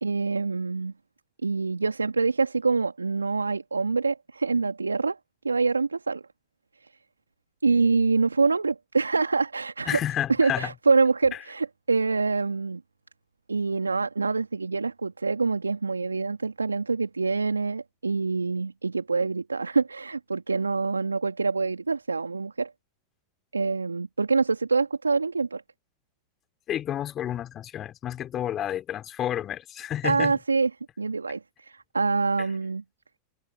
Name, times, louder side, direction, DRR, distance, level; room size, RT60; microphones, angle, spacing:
voice 1, 0.0-0.9 1.4-5.2 5.4-6.2 7.6-10.0 10.4-12.8 13.5-22.7 23.5-25.6 30.0-30.7 31.0-32.8, right 4 dB, 85° right, 2.4 m, -25 dB
voice 2, 9.9-10.7 26.7-30.3, left 11 dB, 35° left, 4.6 m, -30 dB
figure-of-eight pair, 90°, 0 cm